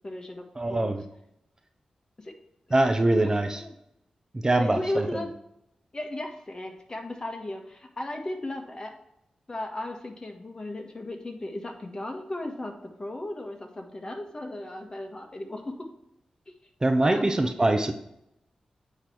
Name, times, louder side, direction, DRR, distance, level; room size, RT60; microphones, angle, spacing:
voice 1, 0.0-1.0 2.2-2.3 3.1-3.7 4.5-5.3 5.9-8.9 9.5-12.7 13.0-15.6 16.5-16.6 17.0-17.3, left 1 dB, 35° left, 3 dB, 1.5 m, -35 dB
voice 2, 0.6-1.0 2.7-3.6 4.3-5.1 16.8-17.9, right 2 dB, 30° right, 6 dB, 0.7 m, -23 dB
8.9 x 3.3 x 5.9 m, 0.81 s
cardioid pair, 45°, 2 cm